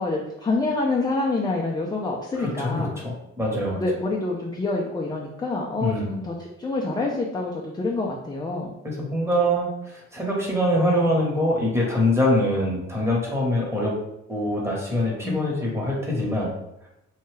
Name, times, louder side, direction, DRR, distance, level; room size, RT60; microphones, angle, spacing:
voice 1, 0.0-2.9 3.8-8.7 15.2-15.7, left 2 dB, 15° left, -2 dB, 0.4 m, -27 dB
voice 2, 2.4-3.8 5.8-6.1 8.8-13.9 14.3-16.5, left 1 dB, 10° right, -3 dB, 1.0 m, -24 dB
2.7 x 2.3 x 3.1 m, 0.83 s
cardioid pair, 90°, 30 cm